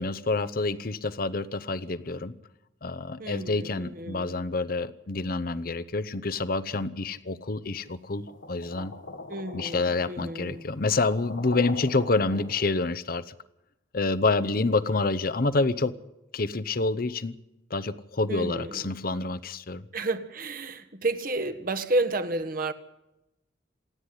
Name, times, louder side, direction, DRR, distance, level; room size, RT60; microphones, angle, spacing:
voice 1, 0.0-2.3 2.8-8.9 9.5-13.2 13.9-15.9 16.3-17.4 17.7-19.8, left 3 dB, 50° left, 0.8 m, -28 dB
voice 2, 3.2-4.4 9.3-10.6 18.3-18.9 19.9-22.7, right 2 dB, 50° right, 1.5 m, -31 dB
sound 1, 8.3-12.8, left 2 dB, 90° left, 1.9 m, -42 dB
27.0 x 9.7 x 9.9 m
head